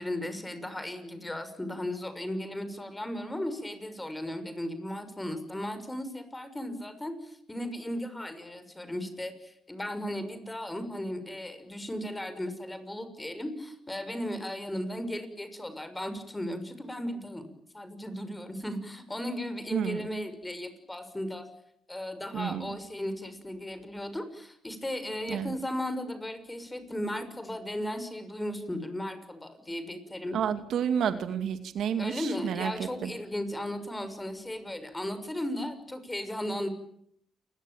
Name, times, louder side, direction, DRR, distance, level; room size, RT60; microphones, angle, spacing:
voice 1, 0.0-17.4 17.7-21.5 21.9-30.4 32.0-36.7, left 1 dB, 10° left, 10 dB, 6.3 m, -36 dB
voice 2, 19.7-20.1 22.3-22.7 25.3-25.5 30.3-32.7 33.0-33.1, right 8 dB, 70° right, 9 dB, 2.4 m, -30 dB
29.5 x 22.0 x 9.2 m, 0.72 s
cardioid pair, 90°, 0 cm